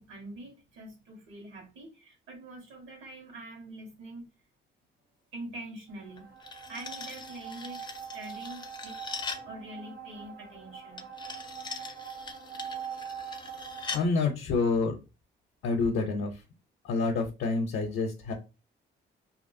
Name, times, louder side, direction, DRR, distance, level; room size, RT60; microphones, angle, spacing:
voice 1, 0.0-4.3 5.3-6.3 6.7-9.0 9.4-11.1, right 1 dB, 75° right, 1.3 m, -45 dB
sound 1, 5.9-14.0, right 7 dB, 50° right, 0.8 m, -43 dB
sound 2, 6.2-9.5 11.0-14.1, left 4 dB, 20° left, 0.4 m, -41 dB
voice 2, 13.9-15.0 15.6-16.3 16.8-18.3, left 3 dB, 80° left, 0.6 m, -28 dB
2.7 x 2.4 x 2.6 m
cardioid pair, 90°, 20 cm